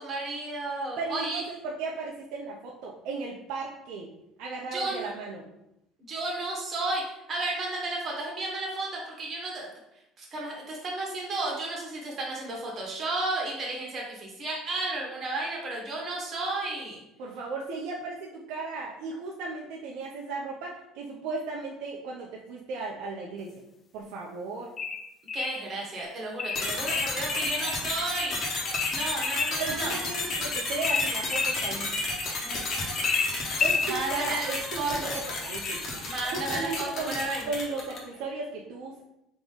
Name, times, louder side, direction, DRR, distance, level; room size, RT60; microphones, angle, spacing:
voice 1, 0.0-1.4 4.7-5.1 6.1-9.7 10.2-17.0 25.3-28.7 28.9-30.0 32.4-33.0 33.8-34.5 34.8-35.1 36.0-37.4, right 2 dB, 35° right, -2 dB, 1.4 m, -33 dB
voice 2, 1.0-4.1 4.4-5.4 17.2-23.5 23.9-24.7 29.6-32.0 33.6-35.8 36.3-37.1 37.4-39.0, right 3 dB, 75° right, -2 dB, 0.6 m, -35 dB
sound 1, 24.8-25.6 26.4-27.2 28.7-29.6 30.8-31.6 33.0-33.9, left 5 dB, 35° left, 0.4 m, -28 dB
sound 2, 26.5-38.1, left 2 dB, 50° left, 1.2 m, -32 dB
3.8 x 3.0 x 3.8 m, 0.84 s
cardioid pair, 120°, 0 cm